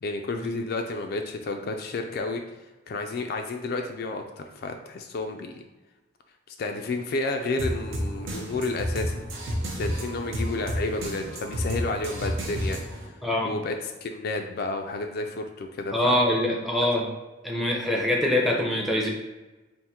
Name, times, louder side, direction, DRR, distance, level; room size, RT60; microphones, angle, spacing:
voice 1, 0.0-2.4 2.9-5.6 6.5-9.2 9.7-13.1 13.4-16.2, left 3 dB, 50° left, 4 dB, 0.3 m, -31 dB
sound 1, 7.6-13.1, equal, 75° right, 0.8 m, -31 dB
voice 2, 13.2-13.5 15.9-17.1 17.4-19.1, left 1 dB, ahead, -2 dB, 0.5 m, -24 dB
3.6 x 2.5 x 4.2 m, 1.2 s
head